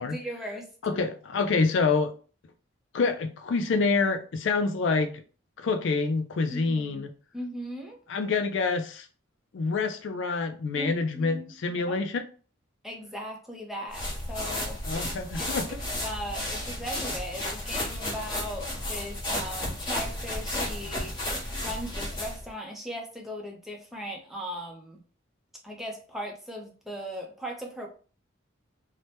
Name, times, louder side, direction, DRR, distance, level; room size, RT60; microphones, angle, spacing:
voice 1, 0.0-1.0 6.5-7.1 7.3-8.0 10.8-12.0 12.8-14.8 15.4-15.6 16.0-21.1 21.6-25.0 25.6-27.9, equal, ahead, 0.6 m, -38 dB
voice 2, 0.8-2.1 2.9-5.1 5.6-7.1 8.1-9.1 9.5-12.2 14.9-15.8, left 4 dB, 65° left, 0.4 m, -27 dB
sound 1, 13.9-22.5, left 1 dB, 25° left, 0.9 m, -33 dB
2.7 x 2.1 x 3.2 m
head